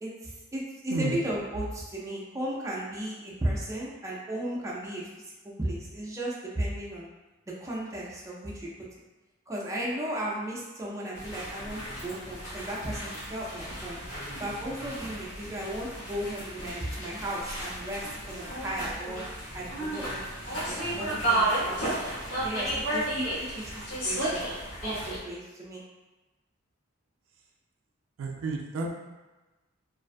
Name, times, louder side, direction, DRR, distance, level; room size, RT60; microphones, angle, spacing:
voice 1, 0.0-5.1 5.4-7.1 7.6-8.9 9.5-14.0 14.4-19.2 19.5-21.9 22.4-23.3 23.5-24.5 24.8-25.8, right 1 dB, 15° right, -5 dB, 0.4 m, -35 dB
sound 1, 11.2-25.2, right 1 dB, 75° left, 1.0 m, -33 dB
voice 2, 28.2-28.9, right 3 dB, 80° right, 1 dB, 0.3 m, -31 dB
2.4 x 2.2 x 2.5 m, 1.1 s
head